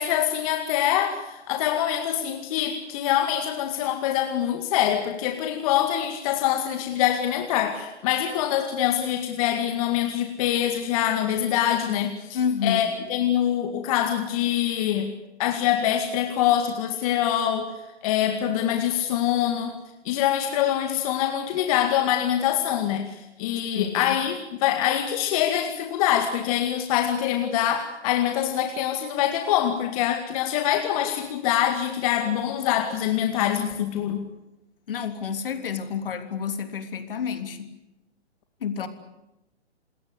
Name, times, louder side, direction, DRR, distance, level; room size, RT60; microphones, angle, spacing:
voice 1, 0.0-15.1 15.4-17.7 18.0-19.8 20.0-34.2, left 11 dB, 30° left, 6 dB, 2.1 m, -24 dB
voice 2, 12.3-13.1 23.7-24.2 34.9-37.7 38.6-38.9, left 7 dB, 50° left, 8 dB, 3.4 m, -29 dB
27.5 x 21.0 x 8.5 m, 0.96 s
figure-of-eight pair, 130°, 34 cm